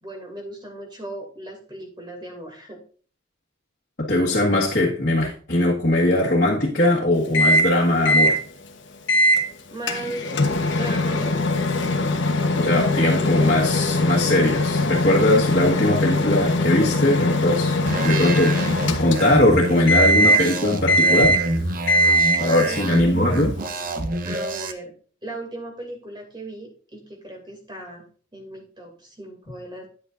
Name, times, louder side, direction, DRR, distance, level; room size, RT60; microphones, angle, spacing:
voice 1, 0.0-2.8 9.7-11.4 22.3-24.9 25.2-28.0 28.3-29.9, right 2 dB, 25° right, 2.5 m, -37 dB
voice 2, 4.0-8.4 12.6-17.8 18.0-18.7 19.0-21.4 22.4-23.6, left 1 dB, 50° left, 1.5 m, -20 dB
Microwave oven, 7.3-7.7 8.0-8.4 9.1-9.4 9.9-19.5 19.9-20.5 20.9-21.5 21.9-22.5, left 1 dB, 65° left, 1.1 m, -21 dB
sound 1, 17.9-24.7, right 1 dB, 45° right, 0.7 m, -27 dB
10.5 x 8.1 x 2.5 m
head